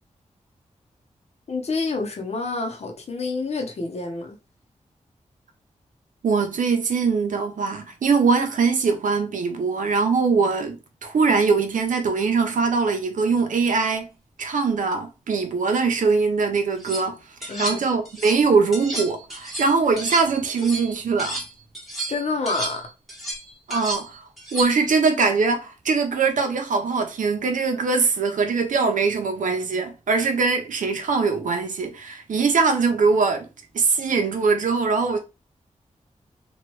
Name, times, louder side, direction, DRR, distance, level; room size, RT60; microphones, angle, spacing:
voice 1, 1.5-4.4 17.5-17.8 22.1-22.9, left 3 dB, 55° left, 0.7 m, -28 dB
voice 2, 6.2-14.1 14.4-21.4 23.7-33.5 33.7-35.2, right 4 dB, 85° right, 0.6 m, -22 dB
sound 1, 16.6-17.0 17.4-18.4 18.7-21.5 21.7-24.9, right 2 dB, ahead, 1.1 m, -32 dB
3.0 x 2.3 x 3.0 m
wide cardioid pair, 95°, 13 cm